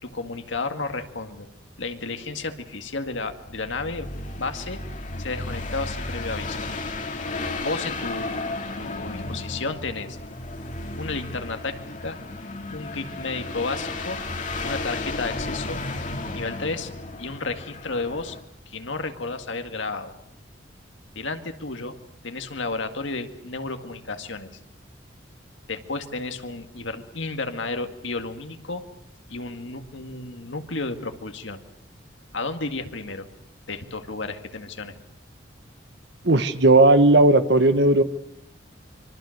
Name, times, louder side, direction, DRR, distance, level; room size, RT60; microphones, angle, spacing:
voice 1, 0.0-1.5 1.8-4.1 4.4-4.8 5.2-6.6 7.6-10.2 11.0-11.8 12.0-12.2 12.7-14.2 14.6-15.8 16.3-16.9 17.2-18.4 18.7-20.1 21.2-22.0 22.2-24.5 25.7-28.8 29.3-31.6 32.3-33.3 33.7-34.9, left 3 dB, 75° left, 7 dB, 2.0 m, -32 dB
sound 1, 3.3-18.4, left 2 dB, 40° left, 2.5 m, -33 dB
voice 2, 36.2-38.0, right 2 dB, 60° right, 10 dB, 1.3 m, -16 dB
25.5 x 24.0 x 6.6 m, 0.76 s
head